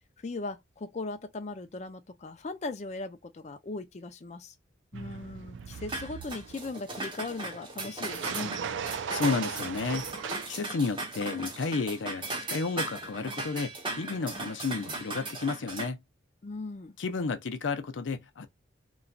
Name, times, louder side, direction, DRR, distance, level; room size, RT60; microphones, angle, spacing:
voice 1, 0.2-4.5 4.9-8.5 16.4-17.0, left 3 dB, 40° left, 0.4 m, -38 dB
sound 1, 4.9-6.7 8.0-10.5, right 7 dB, 80° right, 0.4 m, -37 dB
sound 2, 5.9-15.9, right 2 dB, 25° right, 0.9 m, -38 dB
voice 2, 9.1-10.1 10.5-16.0 17.0-18.5, left 4 dB, 85° left, 0.5 m, -32 dB
3.0 x 2.6 x 2.2 m
head